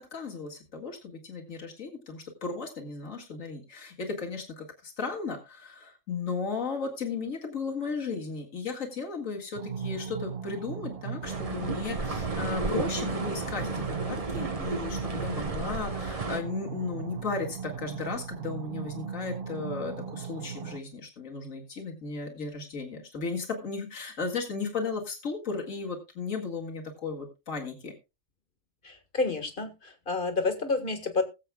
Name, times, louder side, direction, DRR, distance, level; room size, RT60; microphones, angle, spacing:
voice 1, 0.0-27.9, left 4 dB, 85° left, 1 dB, 2.4 m, -35 dB
sound 1, 9.6-20.8, right 6 dB, 55° right, 0.8 m, -38 dB
sound 2, 11.2-16.4, right 3 dB, 30° right, 1.1 m, -33 dB
voice 2, 28.8-31.2, left 3 dB, 40° left, 7 dB, 1.8 m, -29 dB
21.0 x 7.7 x 2.3 m, 0.26 s
omnidirectional pair, 1.3 m